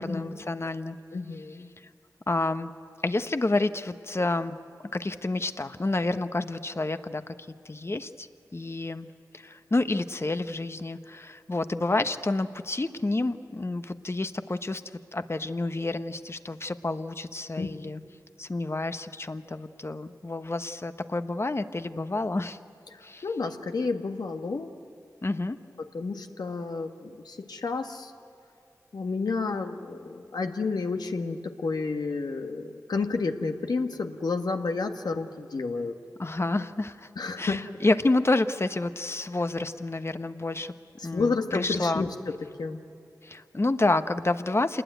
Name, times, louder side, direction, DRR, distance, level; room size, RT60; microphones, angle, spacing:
voice 1, 0.0-1.0 2.3-2.7 3.0-4.6 4.9-7.3 7.6-14.8 15.1-18.0 18.4-22.6 23.0-23.2 25.2-25.6 36.2-37.1 37.4-40.7 41.0-42.1 43.2-44.8, left 2 dB, 40° left, 10 dB, 1.1 m, -29 dB
voice 2, 1.1-1.7 17.6-17.7 23.2-24.7 25.9-28.1 28.9-35.9 37.2-37.6 41.0-42.1 42.6-42.8, left 4 dB, 75° left, 5 dB, 1.6 m, -30 dB
27.5 x 20.5 x 9.4 m, 2.5 s
cardioid pair, 40°, 7 cm